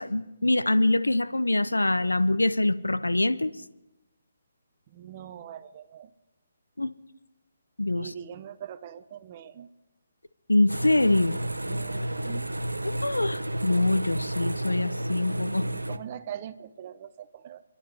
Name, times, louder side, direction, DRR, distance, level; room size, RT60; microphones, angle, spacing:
voice 1, 0.0-3.5 6.8-6.9 7.8-8.1 10.5-11.3 12.8-15.7, left 2 dB, 85° left, 14 dB, 0.6 m, -24 dB
voice 2, 4.9-6.1 7.9-9.7 11.7-12.5 15.6-17.6, right 9 dB, 35° right, 12 dB, 0.7 m, -42 dB
sound 1, 10.7-16.0, right 1 dB, 90° right, 0.9 m, -31 dB
30.0 x 12.0 x 3.4 m, 1.0 s
figure-of-eight pair, 140°, 0 cm